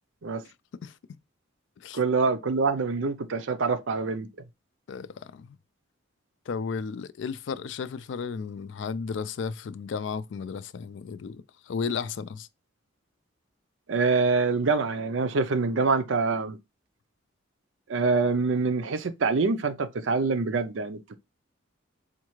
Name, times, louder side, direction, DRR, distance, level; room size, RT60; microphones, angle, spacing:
voice 1, 1.9-4.3 13.9-16.6 17.9-21.2, right 4 dB, 70° right, 0.5 m, -25 dB
voice 2, 4.9-5.6 6.5-12.5, left 5 dB, 65° left, 0.3 m, -34 dB
4.3 x 2.4 x 3.0 m
head